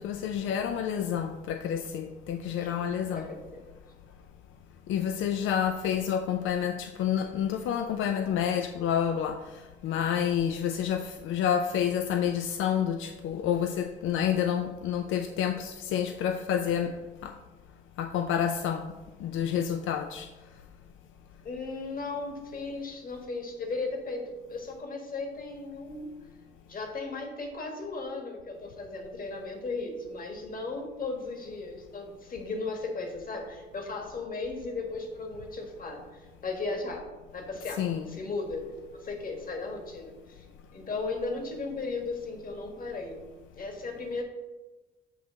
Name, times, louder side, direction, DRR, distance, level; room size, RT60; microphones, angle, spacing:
voice 1, 0.0-3.3 4.9-9.4 9.8-16.9 17.2-17.3 18.0-18.8 19.2-20.3 37.8-38.2, left 9 dB, 80° left, 6 dB, 0.5 m, -29 dB
voice 2, 2.6-3.6 21.4-26.1 26.7-37.1 37.3-37.8 38.1-40.4 40.7-43.2 43.6-44.2, left 3 dB, 45° left, 3 dB, 1.5 m, -36 dB
8.1 x 3.0 x 6.2 m, 1.1 s
cardioid pair, 90°, 20 cm